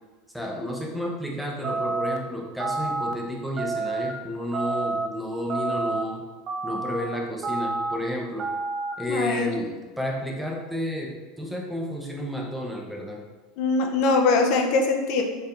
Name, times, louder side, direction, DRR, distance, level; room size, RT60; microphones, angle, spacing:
voice 1, 0.3-6.2 6.6-8.5 9.0-13.2, equal, ahead, -1 dB, 0.7 m, -31 dB
sound 1, 1.6-2.2 2.6-3.1 3.6-4.1 4.5-5.1 5.5-6.0 6.5-7.0 7.4-8.0 8.4-8.9, right 3 dB, 35° right, 0.4 m, -28 dB
voice 2, 9.1-9.5 13.6-15.2, left 3 dB, 60° left, 4 dB, 0.6 m, -22 dB
4.4 x 3.4 x 2.5 m, 1.4 s
supercardioid pair, 125°, 0 cm